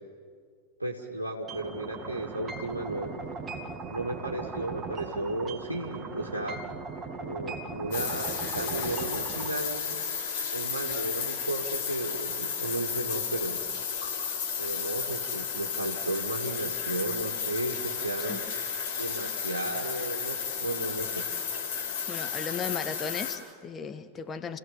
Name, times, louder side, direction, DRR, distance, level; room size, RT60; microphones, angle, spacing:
voice 1, 0.8-3.3 3.9-6.6 7.2-10.1 10.5-13.6 14.6-18.5 19.0-21.3, right 2 dB, 85° right, -2 dB, 1.6 m, -34 dB
sound 1, 1.5-9.5, right 4 dB, 20° right, 2.2 m, -39 dB
sound 2, 7.9-23.4, left 7 dB, 55° left, 4.4 m, -33 dB
voice 2, 22.1-24.6, left 6 dB, 20° left, 10 dB, 1.3 m, -36 dB
30.0 x 16.5 x 7.1 m, 2.1 s
figure-of-eight pair, 90°, 0 cm